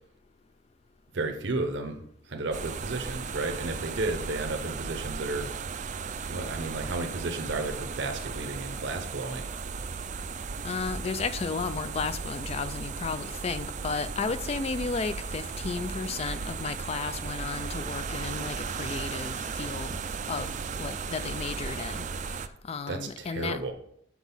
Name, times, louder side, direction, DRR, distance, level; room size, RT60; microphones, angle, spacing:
voice 1, 1.1-5.5 6.3-9.5 22.9-23.7, right 2 dB, 65° right, 0.8 m, -33 dB
sound 1, 2.5-22.5, right 5 dB, 40° right, 0.4 m, -36 dB
voice 2, 10.6-20.0 20.3-22.4 22.6-23.6, left 4 dB, 30° left, 0.3 m, -33 dB
6.0 x 6.0 x 5.5 m
head